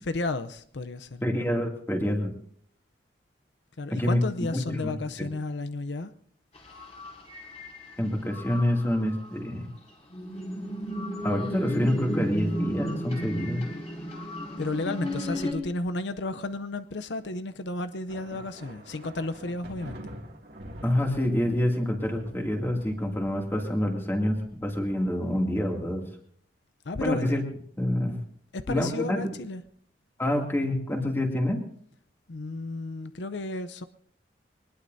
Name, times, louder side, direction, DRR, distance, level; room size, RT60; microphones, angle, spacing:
voice 1, 0.1-1.2 3.8-6.1 14.6-20.1 26.9-27.4 28.5-29.6 32.3-33.8, left 2 dB, 85° left, 0.7 m, -33 dB
voice 2, 1.2-2.3 3.9-4.9 5.2-5.3 8.0-9.7 11.2-13.6 20.8-26.0 27.0-27.4 27.8-28.2 28.7-29.2 30.2-31.7, left 1 dB, 15° left, 2.5 m, -27 dB
sound 1, 6.5-8.0 8.3-9.3 10.1-15.5, equal, 40° left, 4.2 m, -34 dB
sound 2, 18.1-25.4, right 1 dB, 65° right, 2.4 m, -46 dB
23.0 x 20.0 x 2.7 m
head